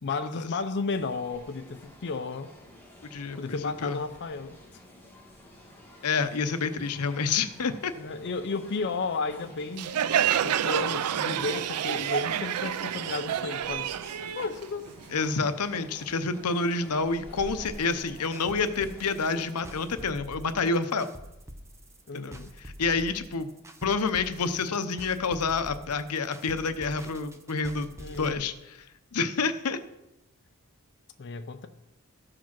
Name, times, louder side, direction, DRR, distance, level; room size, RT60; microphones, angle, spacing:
voice 1, 0.0-2.5 3.4-4.8 8.0-14.0 14.4-14.9 22.1-22.5 28.0-28.4 31.2-31.7, left 4 dB, 50° left, 0.5 m, -33 dB
sound 1, 0.9-20.1, left 1 dB, 10° left, 2.0 m, -50 dB
voice 2, 3.0-4.0 6.0-7.9 15.1-21.1 22.1-23.5 23.8-28.9 29.1-29.8, left 4 dB, 85° left, 0.8 m, -28 dB
Crowd, 9.8-15.2, right 9 dB, 90° right, 0.4 m, -28 dB
sound 2, 17.6-28.3, equal, 15° right, 0.8 m, -45 dB
14.0 x 5.0 x 5.9 m
head